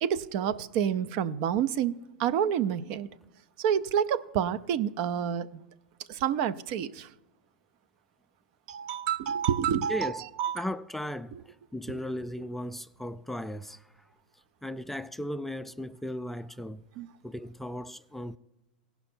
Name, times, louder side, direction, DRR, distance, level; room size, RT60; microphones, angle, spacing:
voice 1, 0.0-3.1 3.6-5.5 6.1-7.1 8.7-10.7 11.3-11.4 11.9-12.0 17.0-17.1, right 9 dB, 55° right, 0.5 m, -29 dB
voice 2, 9.9-10.2 10.5-13.9 14.6-16.8 17.2-18.4, equal, 5° left, 0.3 m, -36 dB
17.0 x 5.6 x 4.4 m
hypercardioid pair, 95°, 5 cm